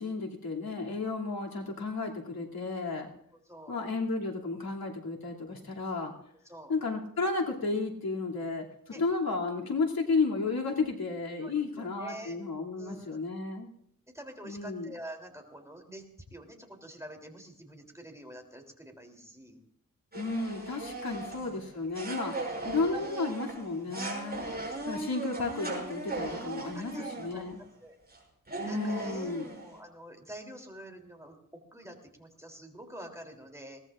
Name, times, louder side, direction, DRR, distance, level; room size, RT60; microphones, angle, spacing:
voice 1, 0.0-3.1 3.7-6.1 6.7-8.6 8.9-13.7 14.4-14.9 20.1-24.4 24.9-27.6 28.7-29.5, left 3 dB, 85° left, -1 dB, 2.9 m, -33 dB
voice 2, 3.4-3.8 6.4-6.7 8.9-9.0 11.4-12.4 12.8-13.3 14.1-16.0 16.3-19.6 21.2-21.3 24.2-24.4 26.7-27.5 27.8-28.0 28.7-33.8, right 1 dB, 10° right, 2 dB, 3.3 m, -47 dB
sound 1, 20.1-27.7 28.1-28.2 28.5-29.8, right 2 dB, 25° right, 6.9 m, -38 dB
22.0 x 18.5 x 2.6 m, 0.73 s
wide cardioid pair, 110°, 35 cm